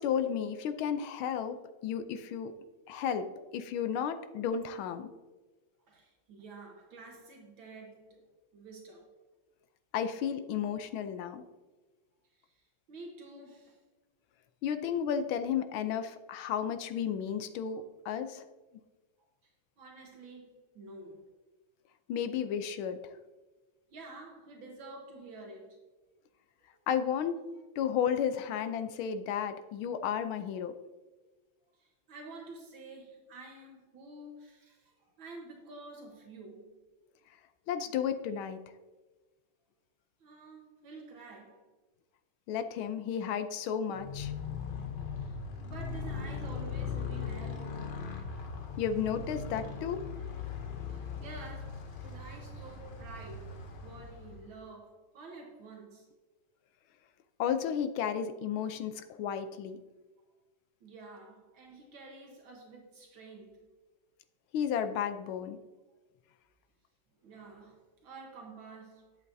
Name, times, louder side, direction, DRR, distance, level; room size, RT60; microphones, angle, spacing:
voice 1, 0.0-2.5 2.9-5.1 9.9-11.4 14.6-18.4 22.1-23.0 26.9-27.4 27.8-30.7 37.7-38.6 42.5-44.3 48.8-50.1 57.4-59.8 64.5-65.6, left 8 dB, 90° left, 9 dB, 1.5 m, -33 dB
voice 2, 5.9-8.2 8.5-9.1 10.8-10.9 12.3-13.8 17.7-17.8 19.4-19.5 19.8-21.3 23.9-25.8 26.7-26.8 27.5-27.6 30.5-30.6 31.7-36.7 40.2-41.7 44.9-48.0 50.9-56.1 60.8-63.7 67.2-69.2, right 3 dB, 75° right, 1 dB, 2.0 m, -49 dB
Motorcycle, 43.9-54.6, left 5 dB, 65° left, 0.5 m, -39 dB
11.0 x 8.0 x 2.7 m, 1.2 s
omnidirectional pair, 2.2 m